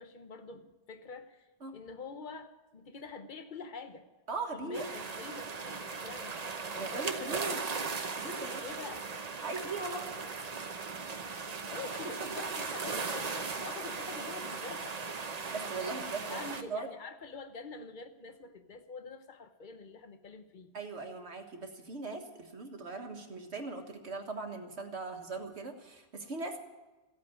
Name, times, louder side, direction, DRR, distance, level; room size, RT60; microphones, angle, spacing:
voice 1, 0.0-4.1 4.5-6.4 6.7-7.6 8.2-9.1 11.7-14.9 16.3-20.7, left 4 dB, 45° left, 9 dB, 1.1 m, -46 dB
voice 2, 4.3-4.9 6.8-7.6 8.2-8.6 9.4-10.1 15.5-16.4 16.7-16.9 20.7-26.6, right 3 dB, 70° right, 5 dB, 1.7 m, -39 dB
sound 1, 4.7-16.6, right 4 dB, 40° right, 0.9 m, -38 dB
15.5 x 8.5 x 9.3 m, 1.1 s
omnidirectional pair, 1.2 m